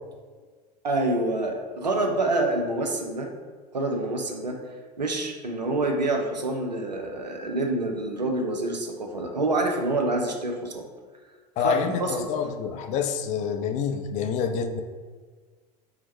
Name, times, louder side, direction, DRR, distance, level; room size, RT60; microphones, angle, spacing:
voice 1, 0.8-3.3 3.7-4.6 5.0-10.9 11.6-12.3, right 2 dB, 90° right, 3 dB, 0.6 m, -27 dB
voice 2, 11.6-14.8, left 7 dB, 35° left, 6 dB, 0.4 m, -27 dB
4.7 x 2.1 x 4.4 m, 1.5 s
figure-of-eight pair, 80°, 21 cm